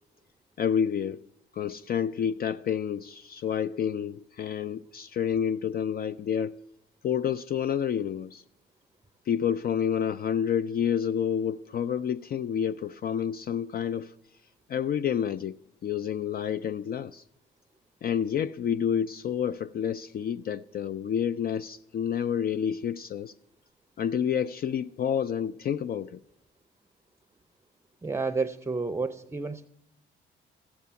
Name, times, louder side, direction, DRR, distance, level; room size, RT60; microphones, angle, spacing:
voice 1, 0.6-1.2 1.6-6.5 7.0-8.4 9.3-14.1 14.7-15.6 15.8-17.2 18.0-23.3 24.0-26.2, left 8 dB, 50° left, 0.4 m, -29 dB
voice 2, 28.0-29.7, right 4 dB, 15° right, 0.6 m, -30 dB
14.0 x 8.5 x 6.9 m
cardioid pair, 90°, 20 cm